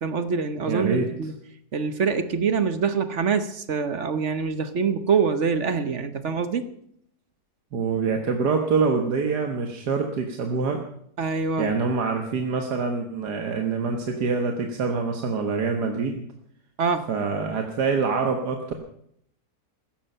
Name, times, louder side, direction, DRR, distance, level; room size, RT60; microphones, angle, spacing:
voice 1, 0.0-1.3 1.7-6.7 11.2-11.7 16.8-17.1, right 5 dB, 50° right, 11 dB, 1.2 m, -25 dB
voice 2, 0.7-1.1 7.7-10.8 11.6-16.3 17.1-18.7, right 5 dB, 75° right, 4 dB, 1.9 m, -25 dB
15.5 x 14.0 x 5.6 m, 0.69 s
omnidirectional pair, 1.8 m